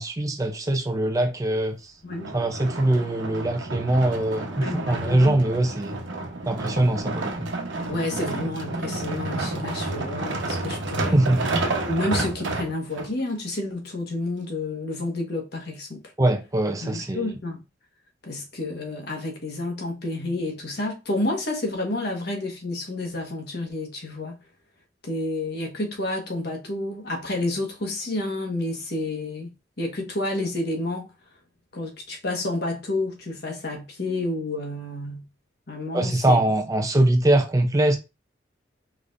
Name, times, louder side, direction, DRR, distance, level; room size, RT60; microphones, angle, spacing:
voice 1, 0.0-1.9 2.3-6.0 6.4-7.5 11.1-11.5 16.2-17.4 35.9-38.0, right 1 dB, 15° right, 0.5 m, -22 dB
voice 2, 2.0-2.3 4.6-5.5 7.9-11.2 11.8-16.1 16.8-17.6 18.2-24.4 25.0-31.1 31.7-35.3 35.7-36.4, left 2 dB, 55° left, 1.4 m, -30 dB
sound 1, 2.1-13.1 13.7-13.8, right 2 dB, 75° right, 1.0 m, -30 dB
4.9 x 3.9 x 2.5 m
head